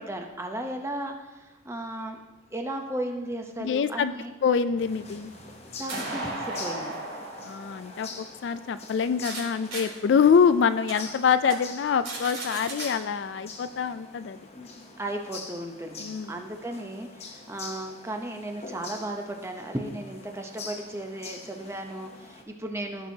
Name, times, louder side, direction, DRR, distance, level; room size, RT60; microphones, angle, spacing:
voice 1, 0.0-2.2 2.5-4.3 5.8-6.9 15.0-23.1, right 1 dB, 15° right, 3 dB, 0.7 m, -35 dB
voice 2, 3.6-4.1 4.4-5.3 7.4-14.4 16.0-16.4, left 6 dB, 60° left, 12 dB, 0.3 m, -25 dB
sound 1, 4.7-9.4 9.7-9.8 10.3-10.4 10.9-11.0 11.4-11.5 11.8-12.9, right 2 dB, 70° right, 3.1 m, -37 dB
sound 2, 4.8-22.4, left 4 dB, 30° left, 0.9 m, -45 dB
15.0 x 6.2 x 2.8 m, 1.2 s
head